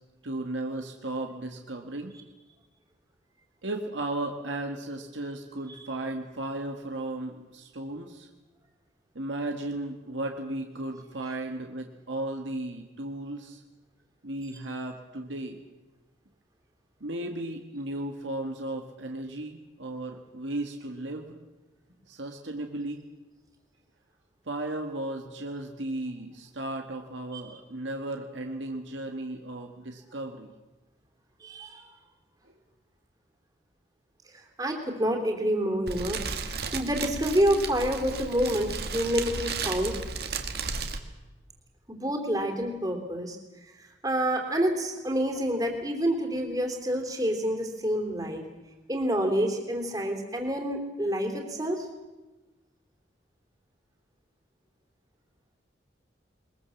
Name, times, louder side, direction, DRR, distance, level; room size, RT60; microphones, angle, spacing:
voice 1, 0.2-2.1 3.6-8.3 9.2-13.6 14.2-15.6 17.0-21.4 22.1-23.0 24.5-30.5, right 1 dB, 80° right, 3 dB, 1.7 m, -35 dB
voice 2, 31.4-31.9 34.3-40.0 41.9-48.4 48.9-51.9, equal, 20° right, 3 dB, 3.3 m, -28 dB
Fire, 35.9-41.0, right 4 dB, 55° right, 1.9 m, -34 dB
22.0 x 22.0 x 7.2 m, 1.1 s
head